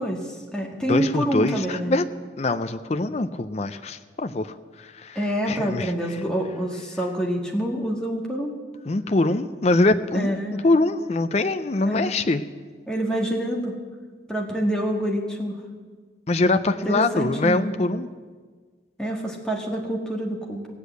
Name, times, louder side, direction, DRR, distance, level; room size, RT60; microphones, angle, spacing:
voice 1, 0.0-2.0 5.1-8.6 10.1-10.6 11.9-12.1 12.9-13.7 14.3-15.5 16.8-17.6 19.0-20.7, right 1 dB, 5° left, -1 dB, 1.7 m, -27 dB
voice 2, 0.9-2.1 2.4-5.2 5.5-5.9 8.9-12.4 16.3-18.1, left 2 dB, 35° left, 10 dB, 0.5 m, -23 dB
17.0 x 8.3 x 8.0 m, 1.5 s
head